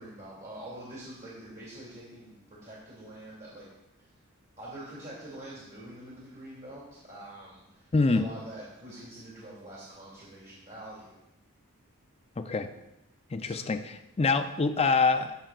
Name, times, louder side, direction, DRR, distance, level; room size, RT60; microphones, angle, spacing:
voice 1, 0.0-3.7 4.0-4.1 4.6-11.2 13.4-13.7, right 1 dB, 40° right, -6 dB, 2.4 m, -45 dB
voice 2, 7.9-8.2 12.4-12.7 13.3-13.8 14.2-15.4, left 4 dB, 30° left, 8 dB, 0.5 m, -25 dB
15.0 x 5.6 x 2.4 m, 0.91 s
head